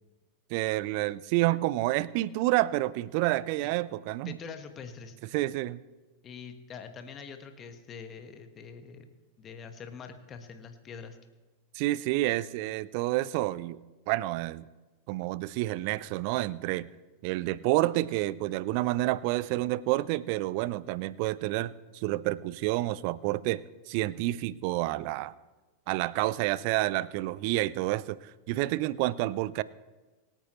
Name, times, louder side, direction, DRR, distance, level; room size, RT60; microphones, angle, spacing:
voice 1, 0.5-4.4 5.3-5.8 11.7-13.8 14.1-14.6 15.1-16.9 17.2-25.3 25.9-28.2 28.5-29.6, right 17 dB, 45° right, 20 dB, 0.4 m, -29 dB
voice 2, 4.2-5.2 6.2-9.1 9.4-11.2, left 6 dB, 25° left, 7 dB, 1.4 m, -44 dB
24.5 x 9.0 x 3.1 m, 1.2 s
figure-of-eight pair, 90°, 0 cm